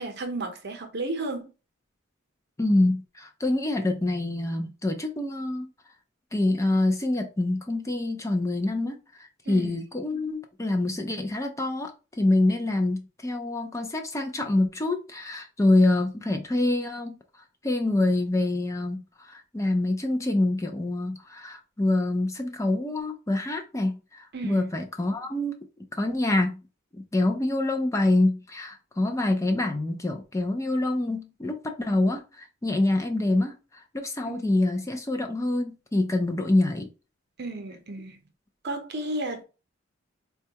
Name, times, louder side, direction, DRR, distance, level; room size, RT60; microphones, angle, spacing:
voice 1, 0.0-1.5 9.5-9.8 24.3-24.6 34.2-34.5 37.4-38.2 38.6-39.4, right 2 dB, 55° right, 0.8 m, -33 dB
voice 2, 2.6-5.7 6.3-9.0 9.5-11.9 12.2-17.2 17.6-25.6 26.0-26.6 26.9-36.9, left 2 dB, 15° left, 0.4 m, -26 dB
4.3 x 2.3 x 2.8 m
head